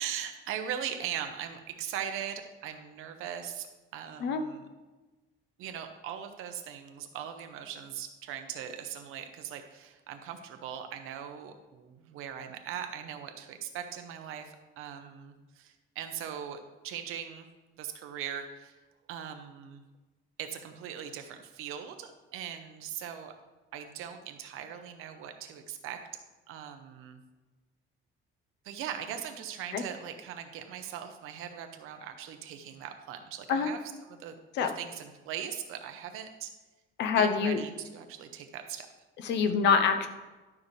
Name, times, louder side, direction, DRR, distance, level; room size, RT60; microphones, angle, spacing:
voice 1, 0.0-3.7 3.9-4.7 5.6-17.5 17.8-18.8 19.1-19.8 20.4-23.3 23.7-26.0 26.5-27.2 28.6-36.5 37.2-38.9, right 9 dB, 80° right, 7 dB, 1.0 m, -40 dB
voice 2, 37.0-37.6 39.2-40.1, left 6 dB, 55° left, 7 dB, 0.8 m, -25 dB
12.0 x 5.9 x 3.3 m, 1.2 s
cardioid pair, 180°, 21 cm